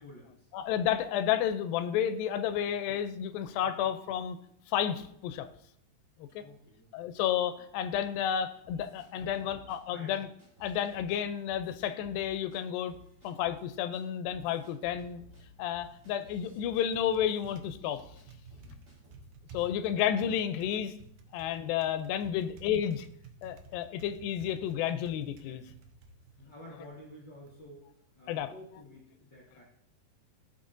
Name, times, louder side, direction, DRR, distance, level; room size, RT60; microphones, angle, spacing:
voice 1, 0.0-0.5 3.6-3.8 6.4-6.9 9.1-9.6 9.9-10.1 18.6-19.3 25.4-25.8 26.4-27.9 28.2-29.6, left 1 dB, 55° left, -5 dB, 1.3 m, -52 dB
voice 2, 0.5-4.4 4.7-5.5 6.4-6.5 6.9-10.3 10.6-12.9 13.2-15.2 15.6-18.0 19.5-21.0 21.3-23.1 23.4-25.6 28.3-28.5, left 9 dB, 90° left, 10 dB, 2.3 m, -31 dB
sound 1, 8.6-9.8 10.4-11.2 11.4-12.6 12.9-13.6 13.9-14.0 14.3-18.2 18.5-19.3 19.6-19.8, right 1 dB, 20° right, 3.8 m, -56 dB
Typing, 15.2-27.6, right 3 dB, 70° right, 2.1 m, -54 dB
15.0 x 5.8 x 2.5 m, 0.73 s
omnidirectional pair, 4.0 m